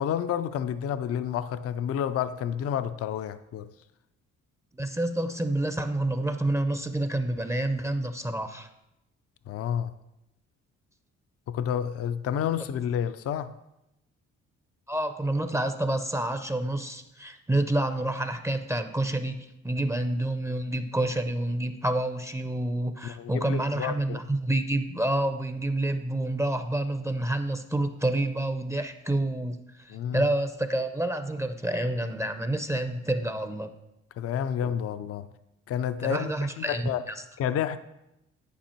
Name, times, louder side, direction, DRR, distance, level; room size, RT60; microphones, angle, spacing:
voice 1, 0.0-3.7 9.5-9.9 11.5-13.5 23.0-24.2 29.9-30.3 34.2-35.3 35.7-37.0 37.4-37.8, left 9 dB, 50° left, 12 dB, 0.5 m, -30 dB
voice 2, 4.8-8.7 14.9-33.7 34.6-34.7 36.0-37.1, right 1 dB, 10° right, 8 dB, 0.5 m, -28 dB
10.0 x 5.2 x 4.4 m, 0.88 s
cardioid pair, 90°, 30 cm